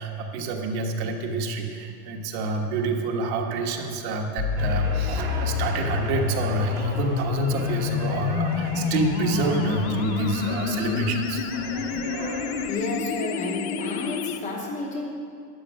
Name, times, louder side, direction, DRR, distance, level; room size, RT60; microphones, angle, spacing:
voice 1, 0.0-11.4, right 4 dB, 50° right, 2 dB, 1.4 m, -28 dB
sound 1, 4.4-14.4, left 7 dB, 45° left, 0.6 m, -28 dB
sound 2, 4.6-12.7, right 3 dB, 20° right, 1.0 m, -37 dB
voice 2, 12.7-15.1, left 2 dB, 15° left, -1 dB, 0.8 m, -31 dB
12.5 x 9.1 x 6.4 m, 2.3 s
supercardioid pair, 175°, 44 cm